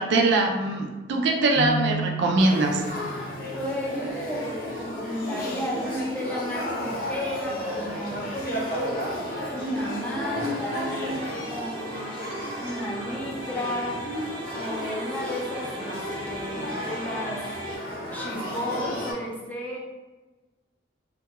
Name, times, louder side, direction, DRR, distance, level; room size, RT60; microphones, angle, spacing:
voice 1, 0.0-2.8, right 2 dB, 65° right, 3 dB, 0.3 m, -22 dB
Keyboard (musical), 1.5-3.4, right 1 dB, 85° left, 0.3 m, -32 dB
Male speech man speaking / Child speech kid speaking / Conversation, 2.4-19.1, equal, 50° left, 0.7 m, -33 dB
voice 2, 3.5-8.4 9.5-14.0 14.5-16.0 16.3-17.4 18.1-19.8, left 1 dB, 10° left, -4 dB, 0.4 m, -33 dB
sound 1, 8.5-17.8, right 1 dB, 85° right, 0.9 m, -39 dB
2.3 x 2.2 x 2.8 m, 1.2 s
head